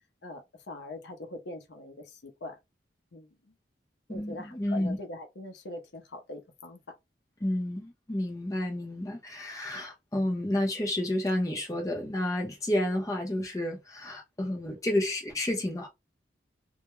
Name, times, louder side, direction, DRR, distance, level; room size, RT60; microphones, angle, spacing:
voice 1, 0.2-2.6 3.1-3.3 4.1-7.0, left 2 dB, 75° left, 0.6 m, -42 dB
voice 2, 4.1-5.0 7.4-15.9, left 1 dB, 20° left, 0.6 m, -30 dB
2.3 x 2.0 x 2.9 m
head